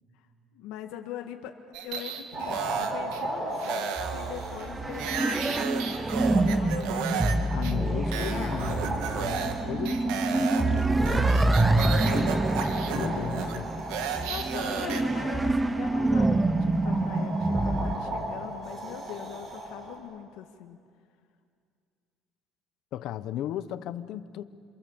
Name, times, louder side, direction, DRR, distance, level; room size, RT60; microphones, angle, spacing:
voice 1, 0.5-6.0 6.3-7.4 9.0-9.8 14.1-20.8, left 11 dB, 80° left, 4 dB, 1.7 m, -42 dB
sound 1, 1.7-3.2 3.6-7.3 7.6-7.7 8.1-9.6 9.8-15.0, right 7 dB, 85° right, 2.3 m, -34 dB
sound 2, 2.3-20.0, right 1 dB, 35° right, 7.5 m, -37 dB
sound 3, 4.0-18.0, right 2 dB, 10° right, 0.8 m, -27 dB
voice 2, 7.5-12.4 12.9-13.7 22.9-24.4, left 11 dB, 60° left, 13 dB, 1.0 m, -36 dB
28.5 x 26.5 x 7.3 m, 2.3 s
cardioid pair, 145°, 0 cm